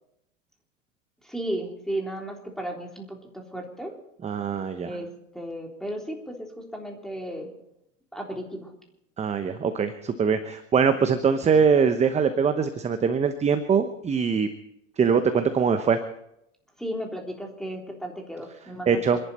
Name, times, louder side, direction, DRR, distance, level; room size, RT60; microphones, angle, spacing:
voice 1, 1.2-3.9 4.8-5.1 5.3-7.5 8.1-8.7 16.8-19.0, right 1 dB, ahead, 1 dB, 3.5 m, -34 dB
voice 2, 4.2-4.9 9.2-14.5 15.0-16.0 18.9-19.2, right 6 dB, 15° right, 9 dB, 1.0 m, -22 dB
27.5 x 11.5 x 4.3 m, 0.80 s
hypercardioid pair, 100°, 38 cm